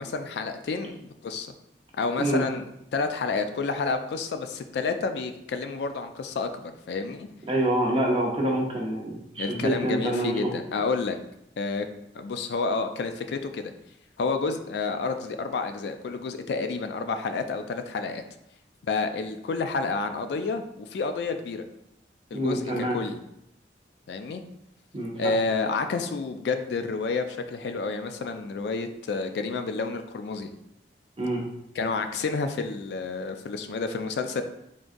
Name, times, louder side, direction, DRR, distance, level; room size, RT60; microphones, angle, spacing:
voice 1, 0.0-1.5 2.0-2.6 2.9-7.3 9.4-11.2 11.6-11.9 12.1-13.7 14.2-18.2 18.9-21.7 22.3-23.2 24.1-24.4 25.2-30.5 31.8-34.4, left 4 dB, 70° left, 7 dB, 0.3 m, -29 dB
voice 2, 7.5-10.4 22.3-23.0 24.9-25.3 31.2-31.4, right 1 dB, 30° right, -1 dB, 0.7 m, -26 dB
3.8 x 3.6 x 2.5 m, 0.80 s
head